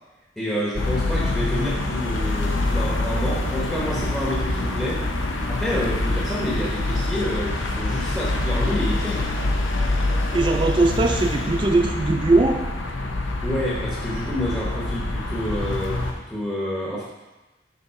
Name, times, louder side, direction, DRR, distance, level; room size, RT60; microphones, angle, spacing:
voice 1, 0.4-5.1 5.4-9.3 13.2-17.0, equal, 5° left, -6 dB, 0.9 m, -28 dB
sound 1, 0.7-16.1, left 2 dB, 90° left, 0.8 m, -25 dB
voice 2, 10.3-12.6, right 2 dB, 25° right, 5 dB, 0.3 m, -20 dB
6.9 x 4.0 x 5.6 m, 1.1 s
head